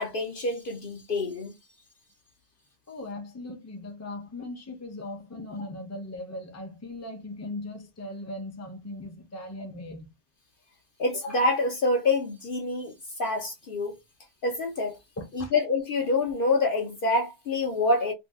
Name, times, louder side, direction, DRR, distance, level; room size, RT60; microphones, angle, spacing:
voice 1, 0.0-1.5 11.0-12.9 13.2-14.0 14.4-15.0 15.3-18.1, left 2 dB, 55° left, 0.7 m, -26 dB
voice 2, 2.9-10.1 15.2-15.5, left 2 dB, 20° left, 0.5 m, -38 dB
2.6 x 2.3 x 3.4 m
omnidirectional pair, 1.2 m